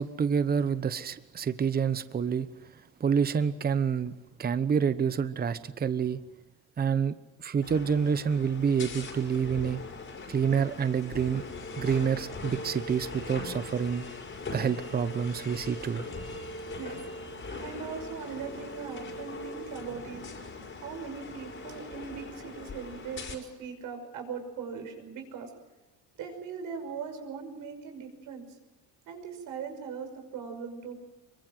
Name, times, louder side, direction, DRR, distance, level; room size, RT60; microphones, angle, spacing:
voice 1, 0.0-2.5 3.0-4.1 4.4-6.2 6.8-9.8 10.3-11.4 11.8-14.1 14.5-16.1, right 7 dB, 30° right, 13 dB, 1.0 m, -28 dB
sound 1, 7.6-23.3, left 2 dB, 35° left, 5.2 m, -40 dB
voice 2, 17.5-20.3 20.8-25.5 26.2-28.4 29.1-31.0, right 6 dB, 70° right, 5 dB, 6.0 m, -40 dB
24.0 x 23.0 x 7.6 m, 1.1 s
cardioid pair, 115°, 33 cm